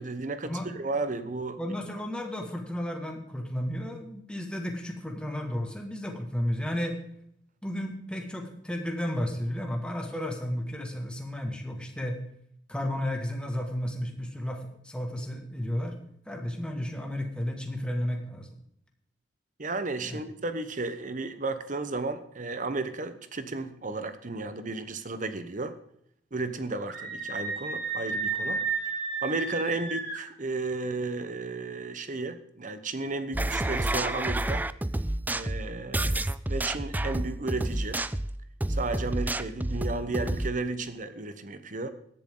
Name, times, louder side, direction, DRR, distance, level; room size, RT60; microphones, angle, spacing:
voice 1, 0.0-1.6 19.6-25.8 26.3-28.6 29.2-34.7 35.3-38.0 38.7-41.9, right 3 dB, 45° right, 11 dB, 1.1 m, -33 dB
voice 2, 1.6-7.0 7.6-12.2 12.7-16.0 16.3-18.5 20.0-20.2, left 1 dB, 5° left, 2 dB, 2.0 m, -33 dB
Screaming, 26.9-30.2, right 4 dB, 70° right, 5.9 m, -32 dB
sound 1, 33.3-40.5, right 1 dB, 10° right, 0.4 m, -29 dB
17.5 x 11.0 x 3.9 m, 0.71 s
head